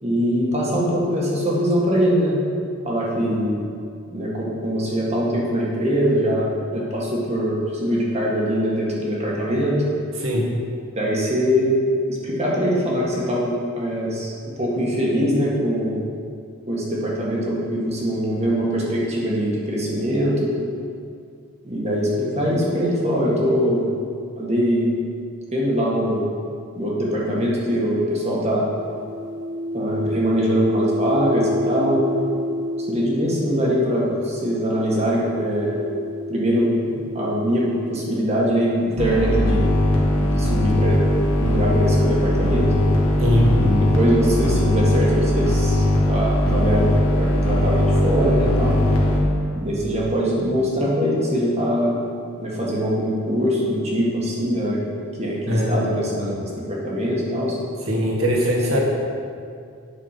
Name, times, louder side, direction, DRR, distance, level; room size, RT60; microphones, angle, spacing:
voice 1, 0.0-2.4 2.8-3.6 4.1-9.8 10.9-11.7 12.1-14.3 14.6-16.0 16.7-20.5 21.6-23.9 24.4-24.9 25.5-26.3 26.8-28.7 29.7-32.1 32.9-35.8 36.3-36.7 37.1-39.7 40.2-41.0 41.4-42.7 43.5-48.8 49.6-52.0 52.4-54.8 55.2-57.6 58.7-58.8, equal, 30° right, -5 dB, 1.8 m, -22 dB
voice 2, 10.2-10.5 43.2-43.6 55.5-56.4 57.9-58.8, equal, 70° right, -2 dB, 1.9 m, -21 dB
sound 1, 28.7-39.1 40.0-43.7, equal, 40° left, 1.8 m, -31 dB
sound 2, 39.0-49.2, left 1 dB, 75° left, 1.6 m, -19 dB
8.9 x 6.2 x 5.8 m, 2.3 s
head